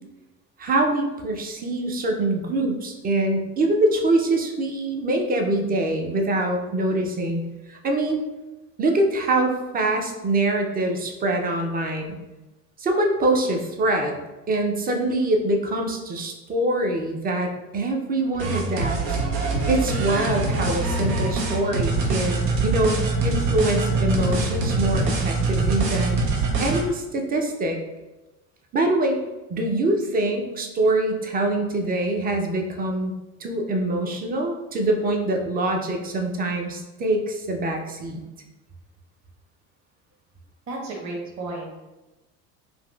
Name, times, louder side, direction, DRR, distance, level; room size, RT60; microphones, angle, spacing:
voice 1, 0.6-7.4 7.7-8.2 8.8-12.1 12.8-14.2 14.5-19.2 19.7-26.2 26.6-27.8 28.7-29.2 29.5-33.1 33.4-38.2, right 1 dB, 20° right, 3 dB, 0.4 m, -24 dB
sound 1, 18.3-26.8, right 3 dB, 80° right, 0.8 m, -24 dB
voice 2, 40.7-41.8, right 2 dB, 35° right, -3 dB, 1.0 m, -33 dB
3.9 x 2.4 x 2.3 m, 1.1 s
hypercardioid pair, 70°, 48 cm